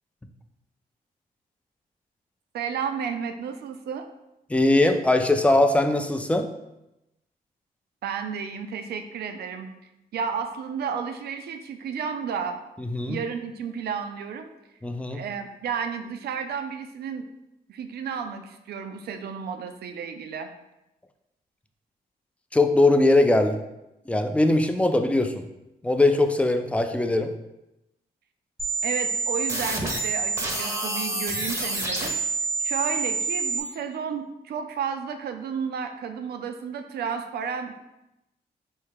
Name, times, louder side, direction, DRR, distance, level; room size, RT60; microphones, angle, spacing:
voice 1, 2.5-4.1 8.0-9.7 10.1-12.6 13.1-14.5 15.1-17.3 17.7-20.5 28.8-32.2 32.6-37.8, right 6 dB, 85° right, 7 dB, 0.4 m, -32 dB
voice 2, 4.5-6.5 12.8-13.2 14.8-15.2 22.5-23.6 24.1-25.4 25.8-27.3, left 2 dB, 10° left, 7 dB, 0.3 m, -21 dB
sound 1, 28.6-33.6, right 3 dB, 15° right, 0.7 m, -27 dB
4.5 x 2.7 x 3.5 m, 0.92 s
cardioid pair, 95°, 16 cm